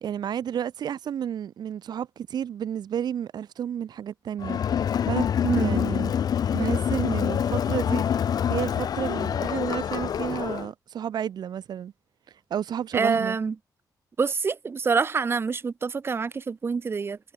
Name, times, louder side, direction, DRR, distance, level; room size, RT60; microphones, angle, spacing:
voice 1, 0.0-4.6 5.1-5.3 5.5-6.1 6.5-11.9 12.3-13.4, right 9 dB, 75° right, 1.6 m, -31 dB
Crowd, 4.4-10.7, left 8 dB, 65° left, 1.1 m, -26 dB
voice 2, 5.4-5.8 12.9-13.5 14.2-17.2, right 5 dB, 35° right, 1.3 m, -26 dB
wide cardioid pair, 165°, 7 cm